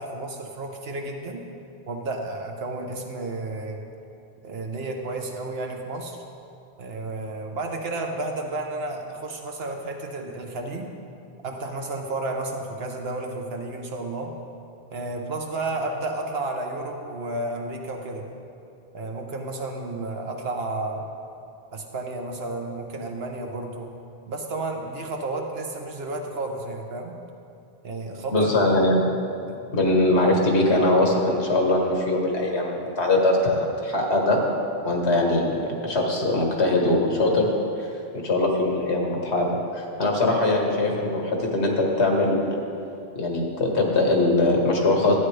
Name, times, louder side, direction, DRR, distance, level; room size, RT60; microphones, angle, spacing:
voice 1, 0.0-1.4 1.9-3.8 4.4-6.2 6.8-10.9 11.4-14.3 14.9-18.3 18.9-21.1 21.7-23.9 24.3-27.2 27.8-28.9 29.5-29.6 40.8-41.3, right 2 dB, 65° right, 2 dB, 1.2 m, -32 dB
voice 2, 28.3-29.0 29.7-34.4 34.8-37.5 37.8-37.9 38.1-39.5 39.7-41.2 41.5-42.6 43.2-45.1, left 2 dB, 85° left, 0 dB, 1.6 m, -21 dB
12.5 x 8.9 x 3.3 m, 2.6 s
omnidirectional pair, 1.1 m